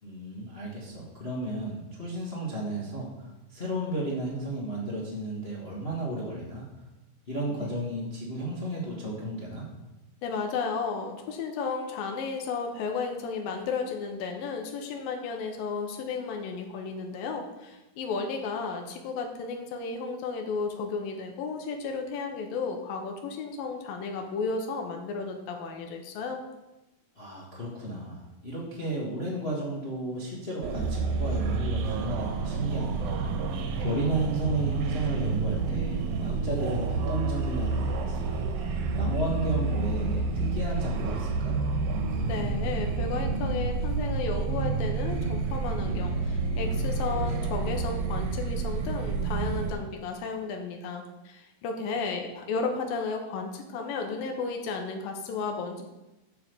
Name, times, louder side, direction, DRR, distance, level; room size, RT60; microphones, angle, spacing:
voice 1, 0.0-6.6 7.3-9.7 27.1-33.1 33.8-38.7 38.9-41.6, right 1 dB, 45° left, -4 dB, 0.7 m, -33 dB
voice 2, 10.2-26.4 42.3-55.8, left 4 dB, 85° left, 3 dB, 2.7 m, -33 dB
sound 1, 30.6-49.7, right 4 dB, 90° right, 2.7 m, -29 dB
8.3 x 5.8 x 6.7 m, 1.0 s
omnidirectional pair, 4.0 m